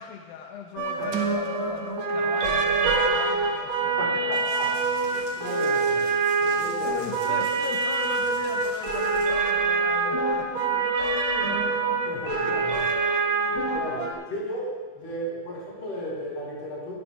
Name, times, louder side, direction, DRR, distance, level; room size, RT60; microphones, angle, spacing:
voice 1, 0.0-4.4 6.8-12.0, left 7 dB, 90° left, 3 dB, 2.5 m, -39 dB
sound 1, 0.8-14.1, right 4 dB, 60° right, 1.4 m, -25 dB
voice 2, 4.0-7.4 12.1-13.0 13.3-16.9, equal, 45° left, -5 dB, 5.1 m, -35 dB
sound 2, 4.3-9.3, right 3 dB, 85° right, 3.8 m, -46 dB
22.0 x 11.5 x 2.4 m, 1.4 s
omnidirectional pair, 4.1 m